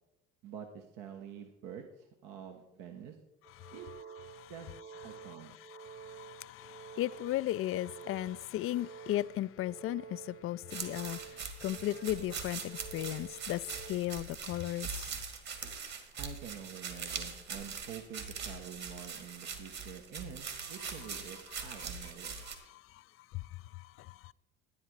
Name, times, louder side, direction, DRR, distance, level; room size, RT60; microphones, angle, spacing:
voice 1, 0.4-3.2 3.7-3.9 4.5-4.7 5.0-5.6 16.2-22.4, right 8 dB, 65° right, 1.2 m, -47 dB
sound 1, 3.4-14.0, right 7 dB, 30° right, 1.1 m, -50 dB
voice 2, 5.6-15.1 21.8-21.9 22.3-23.0 23.3-24.3, left 14 dB, 40° left, 0.4 m, -37 dB
sound 2, 10.7-22.5, right 5 dB, 50° right, 2.2 m, -42 dB
11.5 x 10.0 x 4.7 m
hypercardioid pair, 65°, 34 cm